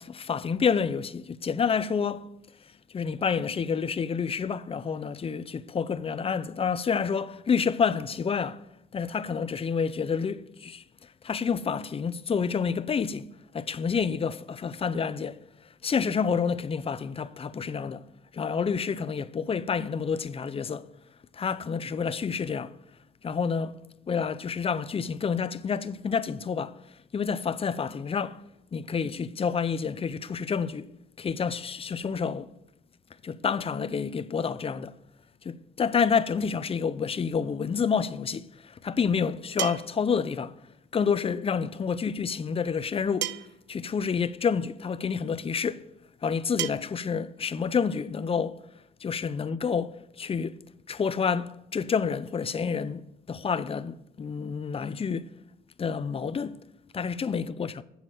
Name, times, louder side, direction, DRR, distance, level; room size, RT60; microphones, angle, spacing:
voice 1, 0.0-2.3 2.9-8.6 8.9-10.8 11.2-15.4 15.8-18.1 18.3-20.9 21.3-22.8 23.2-23.8 24.1-26.8 27.1-28.4 28.7-30.9 31.2-32.5 33.2-34.9 35.4-40.6 40.9-43.3 43.7-45.8 46.2-48.6 49.0-50.6 50.9-53.0 53.3-55.3 55.8-56.6 56.9-57.8, left 6 dB, 30° left, 0.5 m, -29 dB
sound 1, 37.9-38.0 39.6-40.1 41.6-41.7 43.2-43.7 44.9-45.0 46.6-46.7, right 12 dB, 65° right, 0.5 m, -32 dB
7.4 x 7.2 x 7.6 m
cardioid pair, 90°, 20 cm